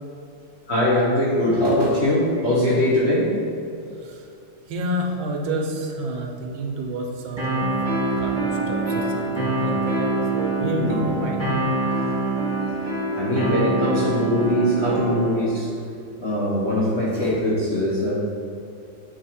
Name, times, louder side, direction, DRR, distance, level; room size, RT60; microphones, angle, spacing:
voice 1, 0.7-3.4 10.8-11.0 13.1-15.7 16.2-18.2, left 1 dB, 55° left, -7 dB, 0.7 m, -21 dB
voice 2, 4.7-11.5, right 1 dB, 80° right, 1 dB, 1.6 m, -29 dB
sound 1, 7.4-15.4, right 2 dB, 15° left, 1.3 m, -25 dB
7.8 x 2.9 x 4.2 m, 2.6 s
omnidirectional pair, 2.2 m